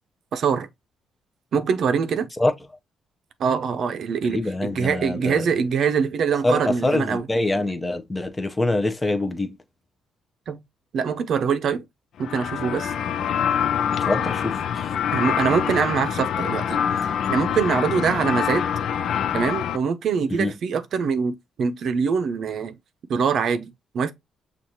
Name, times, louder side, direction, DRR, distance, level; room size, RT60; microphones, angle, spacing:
voice 1, 0.3-0.7 1.5-2.3 3.4-7.3 10.5-10.6 10.9-11.8 12.2-12.9 15.1-16.8 17.3-18.6 19.3-22.8 23.1-24.1, right 6 dB, 65° right, 0.6 m, -24 dB
voice 2, 4.3-5.4 6.4-9.5 14.1-14.9 20.4-20.5, left 2 dB, 15° left, 0.6 m, -24 dB
sound 1, 12.2-19.8, left 8 dB, 70° left, 0.4 m, -25 dB
6.3 x 2.4 x 2.8 m
cardioid pair, 90°, 0 cm